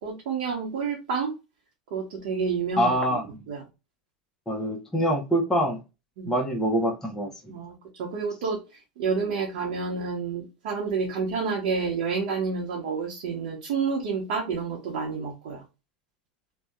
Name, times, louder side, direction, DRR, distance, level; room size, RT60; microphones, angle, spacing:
voice 1, 0.0-1.3 1.9-3.2 3.5-3.6 6.2-6.3 7.5-15.6, right 5 dB, 70° right, 0.8 m, -29 dB
voice 2, 2.8-3.4 4.5-5.8 6.3-7.6, equal, 10° left, 0.7 m, -25 dB
2.7 x 2.2 x 2.3 m
hypercardioid pair, 100°, 5 cm